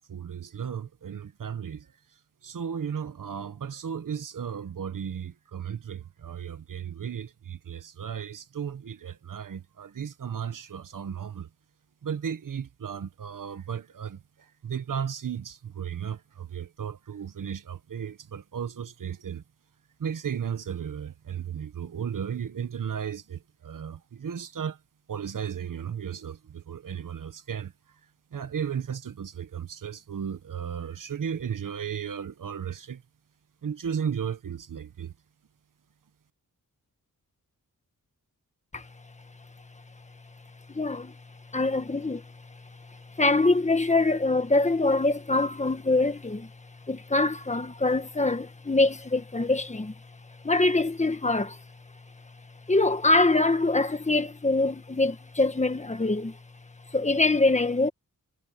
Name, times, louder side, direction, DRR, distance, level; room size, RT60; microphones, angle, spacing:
voice 1, 0.1-1.9 2.4-11.5 12.0-19.4 20.0-24.8 25.1-27.7 28.3-33.0 33.6-35.1, right 8 dB, 65° right, 1.5 m, -35 dB
voice 2, 40.7-41.1 41.5-42.2 43.2-46.5 46.9-49.9 50.4-51.6 52.7-56.4 56.9-57.9, left 2 dB, 20° left, 1.5 m, -24 dB
wide cardioid pair, 145°, 34 cm